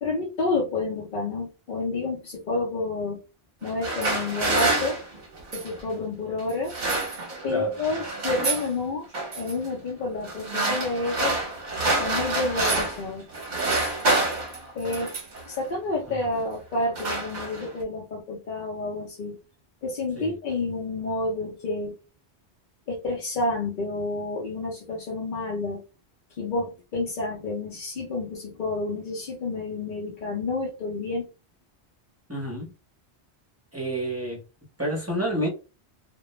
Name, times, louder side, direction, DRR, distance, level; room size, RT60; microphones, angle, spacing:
voice 1, 0.0-3.2 3.6-5.0 5.5-6.7 7.4-9.1 9.3-11.4 12.0-13.3 14.7-15.1 15.5-19.4 19.8-21.9 22.9-25.8 26.4-31.3, left 2 dB, 55° left, 0.7 m, -29 dB
sound 1, 3.6-5.8 6.5-7.5 7.8-8.7 9.1-9.5 10.2-13.1 13.3-15.4 16.2-16.4 16.7-17.8, right 2 dB, 45° right, 0.8 m, -27 dB
voice 2, 32.3-32.7 33.7-34.4 34.8-35.5, right 1 dB, 15° right, 0.7 m, -29 dB
2.2 x 2.1 x 2.9 m
omnidirectional pair, 1.1 m